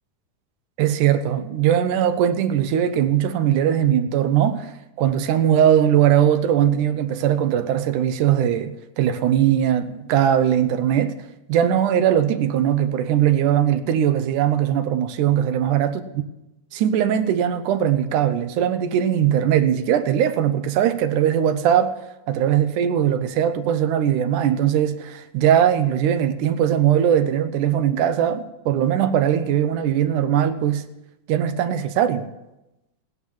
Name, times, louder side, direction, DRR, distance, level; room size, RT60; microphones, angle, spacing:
voice 1, 0.8-11.2 11.5-16.0 16.7-21.9 22.3-30.8 31.3-32.3, right 10 dB, 80° right, 2.4 m, -20 dB
16.5 x 9.6 x 7.2 m
omnidirectional pair, 3.6 m